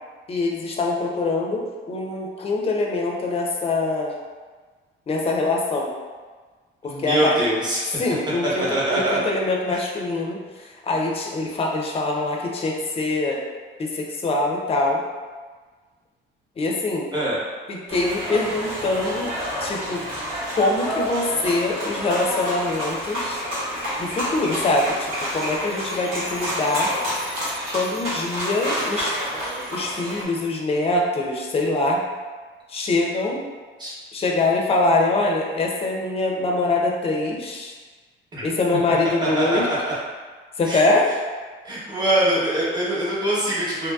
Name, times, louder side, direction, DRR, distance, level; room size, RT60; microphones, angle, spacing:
voice 1, 0.3-4.1 5.1-5.9 6.8-7.4 8.0-13.4 13.8-15.0 16.6-17.1 17.7-19.3 19.6-20.0 20.6-23.4 24.0-26.9 27.7-29.2 29.7-32.0 32.7-33.5 34.1-37.7 38.4-39.7 40.6-41.1, left 2 dB, 30° left, -1 dB, 0.5 m, -24 dB
voice 2, 6.8-7.9 8.6-9.2 9.7-9.8 17.1-17.4 33.8-33.9 38.3-38.4 39.2-39.9 40.7-40.9 41.6-43.9, right 1 dB, 20° right, -7 dB, 0.9 m, -23 dB
sound 1, 17.9-30.2, equal, 90° right, 1.1 m, -29 dB
2.7 x 2.6 x 2.3 m, 1.4 s
cardioid pair, 120°, 20 cm